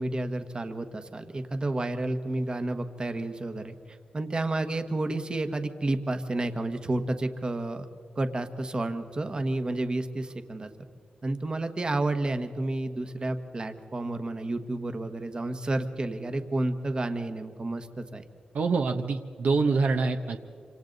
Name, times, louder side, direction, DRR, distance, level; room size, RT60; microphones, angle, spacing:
voice 1, 0.0-3.7 4.1-7.9 8.2-10.7 11.2-18.2, right 2 dB, 30° right, 8 dB, 1.3 m, -30 dB
voice 2, 18.5-20.4, right 4 dB, 70° right, 5 dB, 1.1 m, -25 dB
27.0 x 26.0 x 4.0 m, 2.2 s
wide cardioid pair, 105°, 3 cm